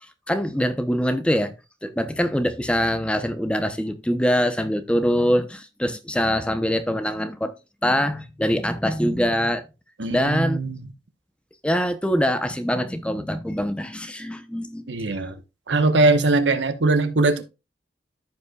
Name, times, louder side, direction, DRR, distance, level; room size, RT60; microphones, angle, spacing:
voice 1, 0.3-1.5 1.8-7.5 7.8-9.6 10.1-10.6 11.6-14.9, equal, 5° left, 0.7 m, -23 dB
voice 2, 10.0-10.8 14.9-15.4 15.7-17.4, right 2 dB, 85° right, 1.1 m, -21 dB
14.0 x 5.4 x 2.3 m
head